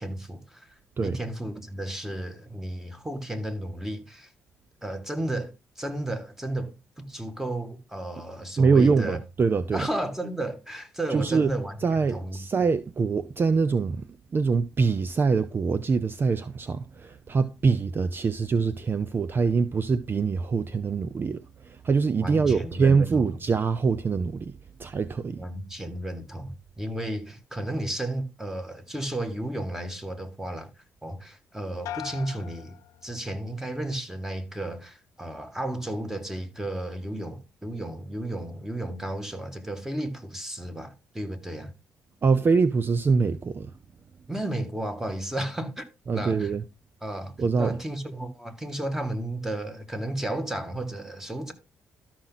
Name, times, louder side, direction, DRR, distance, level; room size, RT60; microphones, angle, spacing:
voice 1, 0.0-4.3 4.8-9.2 9.7-11.8 12.1-12.4 22.2-23.3 25.4-30.7 31.0-32.8 33.0-41.7 44.3-45.9 46.1-46.5 47.0-51.5, right 1 dB, 5° right, 2.1 m, -33 dB
voice 2, 8.6-9.9 11.1-11.5 11.8-25.4 42.2-43.7 46.1-46.6 47.4-47.8, right 5 dB, 35° right, 0.6 m, -24 dB
sound 1, 31.9-33.6 34.0-34.6, left 13 dB, 80° left, 0.6 m, -42 dB
13.0 x 6.1 x 4.0 m
cardioid pair, 80°, 6 cm